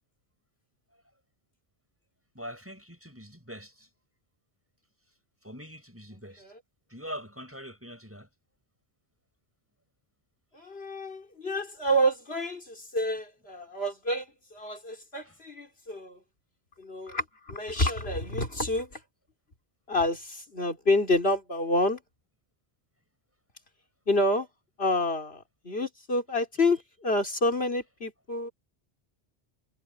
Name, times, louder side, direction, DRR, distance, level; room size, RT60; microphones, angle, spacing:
voice 1, 2.3-3.9 5.4-6.5 6.9-8.3 15.2-15.4, equal, 10° right, 6.3 m, -43 dB
voice 2, 10.5-16.2 16.8-19.0 19.9-22.0 24.1-24.5 24.8-28.5, left 1 dB, 65° left, 3.8 m, -28 dB
omnidirectional pair, 1.1 m